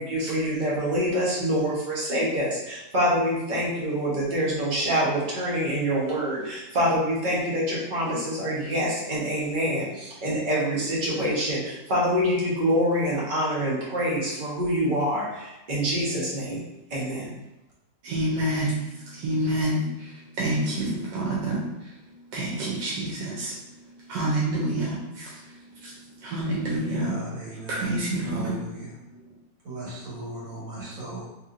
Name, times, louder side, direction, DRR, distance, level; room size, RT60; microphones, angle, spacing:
voice 1, 0.0-16.6 16.9-17.3, equal, 40° right, -6 dB, 0.8 m, -26 dB
voice 2, 18.0-21.7 22.3-23.5 24.1-25.3 25.8-25.9 26.2-27.2 27.7-28.6, right 1 dB, 90° right, -4 dB, 1.3 m, -27 dB
voice 3, 26.7-28.9 29.6-31.3, right 2 dB, 60° right, -7 dB, 1.8 m, -38 dB
3.3 x 2.8 x 2.5 m, 0.95 s
omnidirectional pair, 1.9 m